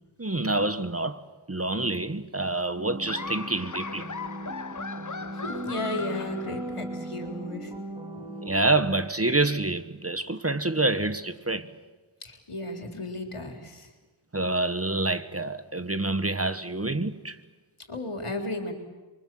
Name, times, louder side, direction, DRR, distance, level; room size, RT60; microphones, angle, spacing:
voice 1, 0.2-1.2 1.5-4.1 8.4-11.7 14.3-17.4, right 2 dB, 30° right, 1.3 m, -27 dB
sound 1, 2.7-8.6, right 1 dB, 10° right, 4.4 m, -38 dB
Laughter, 3.1-7.1, left 4 dB, 35° left, 1.0 m, -38 dB
voice 2, 5.3-7.7 12.2-13.9 17.9-18.7, left 2 dB, 85° left, 3.8 m, -34 dB
30.0 x 23.5 x 7.7 m
wide cardioid pair, 55°, 50 cm